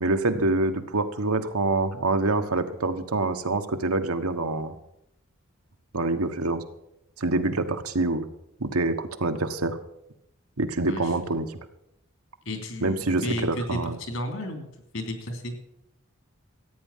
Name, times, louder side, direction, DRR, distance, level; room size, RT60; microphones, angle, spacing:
voice 1, 0.0-4.7 5.9-6.6 7.2-8.3 8.6-9.8 10.6-11.5 12.8-14.0, right 2 dB, 90° right, 7 dB, 1.3 m, -26 dB
voice 2, 12.4-14.7 14.9-15.5, left 1 dB, 70° left, 6 dB, 3.0 m, -33 dB
14.5 x 9.5 x 7.3 m, 0.81 s
head